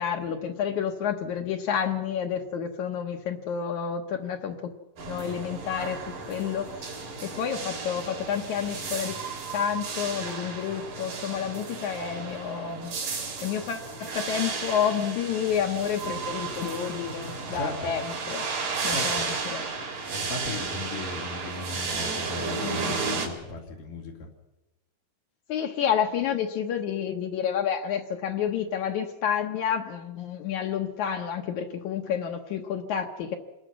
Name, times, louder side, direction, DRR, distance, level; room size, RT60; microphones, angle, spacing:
voice 1, 0.0-4.7 5.1-7.0 7.2-9.2 9.5-13.0 13.4-18.5 18.8-19.7 25.5-33.4, left 8 dB, 70° left, 3 dB, 2.5 m, -29 dB
sound 1, 5.0-23.3, right 4 dB, 85° right, 5.0 m, -33 dB
voice 2, 17.5-18.0 18.9-19.3 20.1-24.3, left 2 dB, 85° left, 1 dB, 4.3 m, -37 dB
27.5 x 20.5 x 6.2 m, 1.0 s
omnidirectional pair, 3.7 m